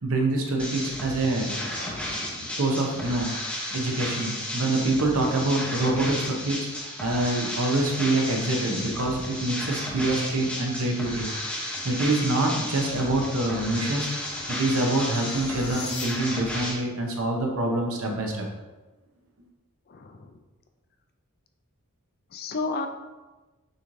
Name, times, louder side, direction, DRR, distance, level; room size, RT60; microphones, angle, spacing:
voice 1, 0.0-1.5 2.6-3.3 3.7-11.3 11.8-14.1 14.5-18.4, right 2 dB, 70° right, 1 dB, 0.8 m, -26 dB
sound 1, 0.6-16.7, left 1 dB, 5° left, 0.7 m, -33 dB
voice 2, 1.5-2.6 19.9-20.3 22.3-22.9, left 3 dB, 45° left, 6 dB, 0.4 m, -34 dB
sound 2, 11.6-16.5, left 3 dB, 80° left, 1.0 m, -42 dB
6.6 x 3.1 x 2.6 m, 1.2 s
head